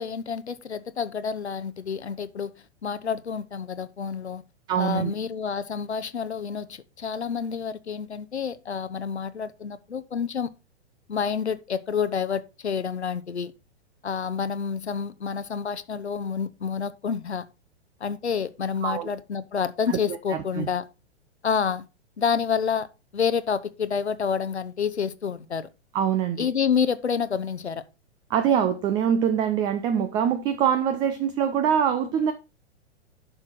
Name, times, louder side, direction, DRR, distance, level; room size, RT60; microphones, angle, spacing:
voice 1, 0.0-2.5 2.8-4.4 4.7-10.5 11.1-13.5 14.0-17.4 18.0-20.9 21.4-21.9 22.2-22.9 23.1-25.7 26.4-27.8, left 6 dB, 70° left, 1.0 m, -28 dB
voice 2, 4.7-5.1 18.8-19.1 19.9-20.0 20.3-20.7 25.9-26.5 28.3-32.3, right 8 dB, 15° right, 0.4 m, -24 dB
11.5 x 6.0 x 4.4 m
figure-of-eight pair, 105°, 34 cm